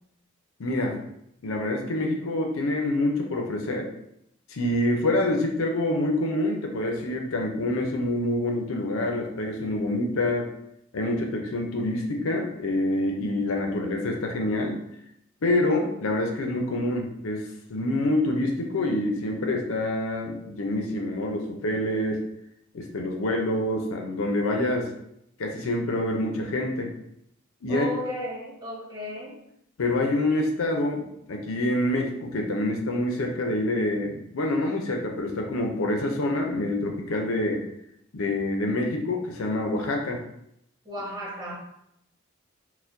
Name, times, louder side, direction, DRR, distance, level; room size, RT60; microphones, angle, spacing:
voice 1, 0.6-1.0 1.4-3.9 4.5-10.5 10.9-14.8 15.4-22.2 22.7-24.9 25.4-26.9 27.6-27.9 29.8-37.6 38.1-40.2, left 1 dB, 70° left, 2 dB, 0.5 m, -26 dB
voice 2, 27.7-29.4 40.8-41.5, left 1 dB, 20° right, -6 dB, 1.1 m, -34 dB
4.3 x 2.1 x 2.5 m, 0.77 s
head